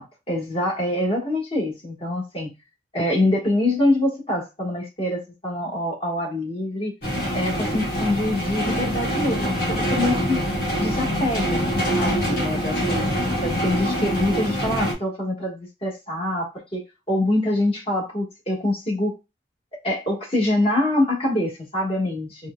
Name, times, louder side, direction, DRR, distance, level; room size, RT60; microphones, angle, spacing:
voice 1, 0.0-2.5 2.9-6.9 7.3-10.4 10.8-13.1 13.4-19.2 19.8-22.5, left 1 dB, 35° left, 1.4 m, -25 dB
sound 1, 7.0-14.9, equal, 60° left, 1.4 m, -24 dB
4.4 x 2.2 x 2.2 m
head